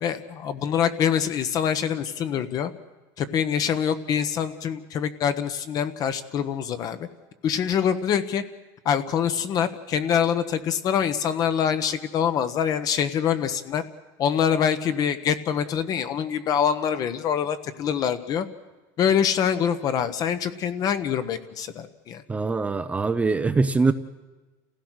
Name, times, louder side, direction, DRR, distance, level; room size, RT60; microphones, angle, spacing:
voice 1, 0.0-2.7 3.2-7.1 7.4-8.4 8.8-13.8 14.2-18.5 19.0-22.2, left 8 dB, 40° left, 11 dB, 1.3 m, -25 dB
voice 2, 22.3-23.9, right 4 dB, 15° right, 10 dB, 0.7 m, -23 dB
28.5 x 16.0 x 6.4 m, 1.2 s
supercardioid pair, 135°, 10 cm